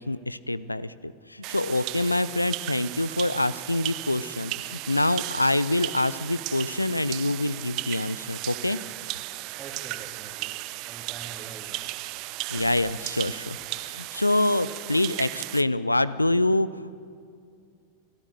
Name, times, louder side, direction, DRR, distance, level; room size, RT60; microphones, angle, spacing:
voice 1, 0.0-8.8 12.5-13.6 13.8-16.9, left 2 dB, 85° left, 18 dB, 0.5 m, -26 dB
sound 1, 1.4-15.6, right 20 dB, 40° right, 0.5 m, -36 dB
voice 2, 9.6-11.9 12.5-12.8, right 5 dB, 25° right, 3 dB, 2.7 m, -45 dB
28.5 x 15.0 x 6.6 m, 2.3 s
figure-of-eight pair, 90°, 0 cm